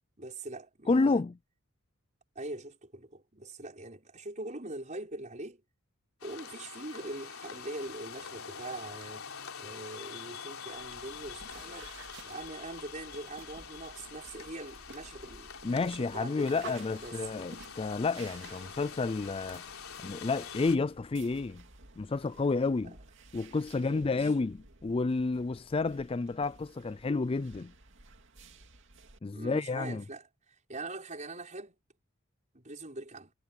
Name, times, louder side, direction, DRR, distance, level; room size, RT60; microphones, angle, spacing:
voice 1, 0.2-1.2 2.4-5.6 6.2-9.3 9.6-11.9 12.2-17.5 22.8-23.0 23.7-24.5 29.3-31.8 32.5-33.3, right 2 dB, 35° right, 5.7 m, -43 dB
voice 2, 0.9-1.3 15.6-19.6 20.0-21.6 22.0-22.9 23.3-24.6 24.8-27.7 29.2-30.0, left 3 dB, 25° left, 0.3 m, -30 dB
sound 1, 6.2-20.8, left 6 dB, 75° left, 3.7 m, -46 dB
sound 2, 10.7-29.2, right 4 dB, 55° right, 2.6 m, -53 dB
head